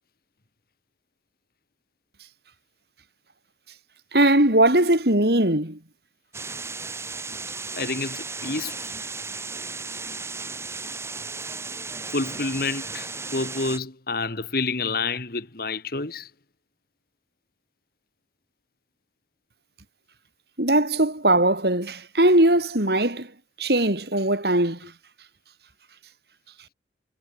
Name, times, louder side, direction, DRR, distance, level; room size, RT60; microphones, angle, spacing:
voice 1, 4.1-5.8 20.6-23.3 23.6-24.9, right 1 dB, 60° right, 4.9 m, -20 dB
sound 1, 6.3-13.8, right 4 dB, 15° right, 2.3 m, -35 dB
voice 2, 7.7-8.9 12.1-16.3, left 3 dB, 55° left, 1.9 m, -29 dB
head